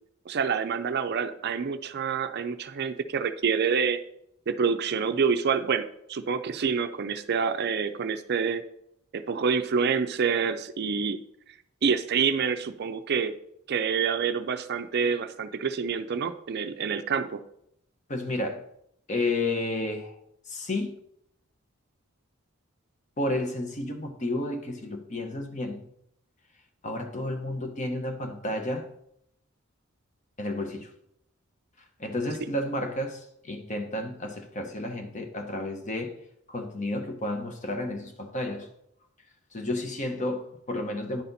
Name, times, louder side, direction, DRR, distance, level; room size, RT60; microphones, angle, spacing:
voice 1, 0.3-4.0 4.5-8.6 9.1-11.2 11.8-13.3 13.7-17.4, right 6 dB, 50° right, 0.4 m, -27 dB
voice 2, 18.1-18.6 19.1-20.1 20.5-20.9 23.2-25.8 26.8-28.9 30.4-30.9 32.0-36.1 36.5-38.7 39.5-41.2, left 1 dB, 35° left, 0.9 m, -31 dB
10.0 x 4.2 x 4.0 m
head